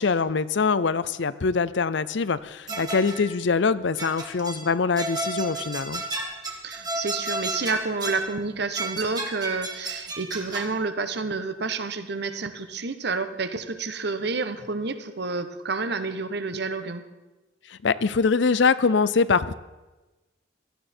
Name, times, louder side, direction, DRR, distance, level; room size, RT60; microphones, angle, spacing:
voice 1, 0.0-6.0 17.7-19.5, left 4 dB, 65° left, 16 dB, 0.6 m, -23 dB
sound 1, 2.7-3.3 4.0-4.7 5.0-8.3 8.7-10.7, right 2 dB, 20° right, 1.7 m, -33 dB
voice 2, 6.6-17.0, right 4 dB, 60° right, 10 dB, 1.0 m, -29 dB
17.0 x 13.5 x 4.4 m, 1.1 s
head